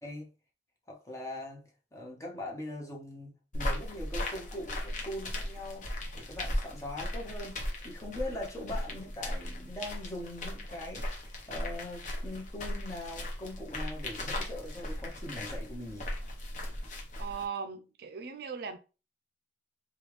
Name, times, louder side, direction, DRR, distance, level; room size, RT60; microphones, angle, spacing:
voice 1, 0.9-5.9 6.1-16.1, left 1 dB, 15° left, 0.9 m, -41 dB
sound 1, 3.5-17.5, left 1 dB, 45° left, 0.8 m, -37 dB
voice 2, 17.2-18.8, right 6 dB, 60° right, 0.4 m, -38 dB
3.3 x 2.4 x 3.1 m
head